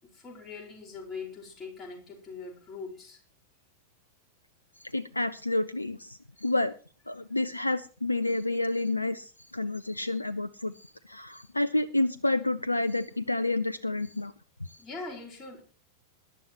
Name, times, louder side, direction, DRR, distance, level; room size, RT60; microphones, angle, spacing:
voice 1, 0.0-3.2 14.8-15.6, left 4 dB, 20° left, 1 dB, 4.6 m, -42 dB
voice 2, 4.8-6.7 7.1-14.3 14.6-14.8, left 2 dB, 85° left, 15 dB, 0.5 m, -29 dB
21.0 x 11.0 x 3.0 m, 0.36 s
figure-of-eight pair, 90°, 0 cm